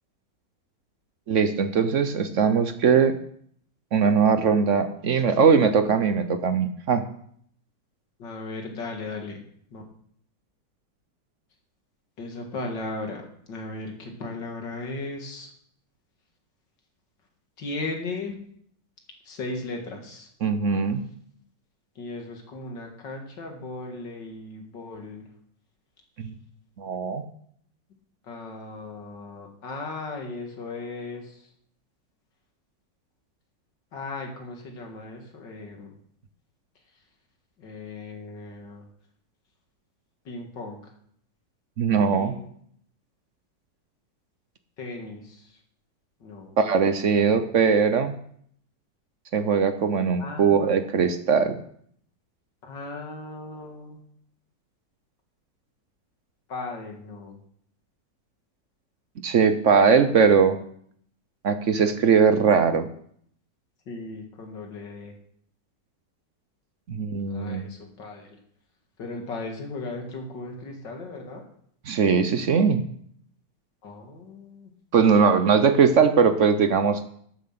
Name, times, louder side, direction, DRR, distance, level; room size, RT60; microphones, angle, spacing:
voice 1, 1.3-3.1 3.9-7.0 20.4-21.0 26.2-26.3 26.8-27.2 41.8-42.3 46.6-48.1 49.3-51.6 59.2-60.6 61.4-62.9 66.9-67.7 71.9-72.8 74.9-77.0, right 6 dB, 55° right, 9 dB, 0.9 m, -20 dB
voice 2, 8.2-9.4 9.7-9.8 12.2-13.2 13.5-15.5 17.6-18.4 19.2-20.3 22.0-25.3 28.2-31.5 33.9-36.0 37.6-38.9 40.3-40.9 42.0-42.5 44.8-45.6 46.2-46.5 50.2-50.7 52.6-54.0 56.5-57.4 63.9-65.1 67.3-68.4 69.0-71.4 73.8-74.7 75.3-75.4, left 3 dB, 75° left, 3 dB, 2.6 m, -37 dB
13.0 x 7.3 x 5.9 m, 0.64 s
omnidirectional pair, 1.9 m